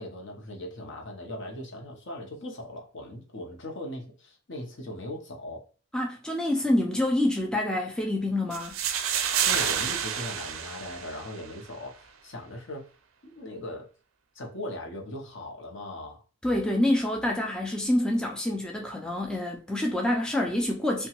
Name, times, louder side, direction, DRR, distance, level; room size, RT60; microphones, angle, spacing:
voice 1, 0.0-5.7 9.4-12.9 13.2-13.9 14.3-16.2, left 1 dB, 60° left, 0.7 m, -39 dB
voice 2, 5.9-8.7 16.4-21.1, left 1 dB, 5° left, 0.3 m, -27 dB
sound 1, 8.5-11.5, right 8 dB, 70° right, 0.4 m, -29 dB
2.8 x 2.2 x 2.8 m
head